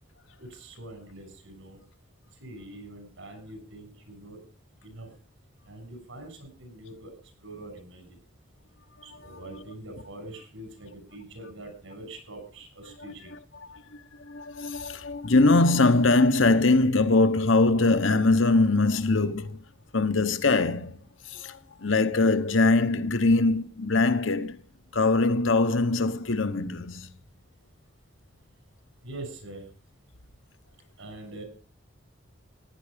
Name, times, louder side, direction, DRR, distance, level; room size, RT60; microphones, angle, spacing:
voice 1, 0.4-1.8 2.4-4.4 4.8-5.1 5.6-7.1 7.4-8.2 9.0-13.3 29.0-29.7 31.0-31.4, right 2 dB, 80° right, 6.8 m, -44 dB
voice 2, 9.1-9.6 13.0-19.6 19.9-21.0 21.2-24.6 24.9-27.1, left 3 dB, 70° left, 1.1 m, -23 dB
15.5 x 11.0 x 5.2 m
head